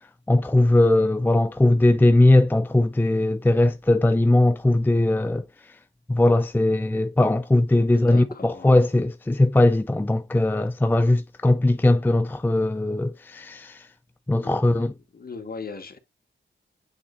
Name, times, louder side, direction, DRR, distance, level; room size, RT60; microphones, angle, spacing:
voice 1, 0.3-5.4 6.1-13.9 14.3-14.9, left 2 dB, 10° left, 0.5 m, -19 dB
voice 2, 7.9-8.7 14.4-14.9 15.1-16.0, left 4 dB, 50° left, 1.6 m, -38 dB
8.9 x 4.0 x 2.6 m
cardioid pair, 75°, 20 cm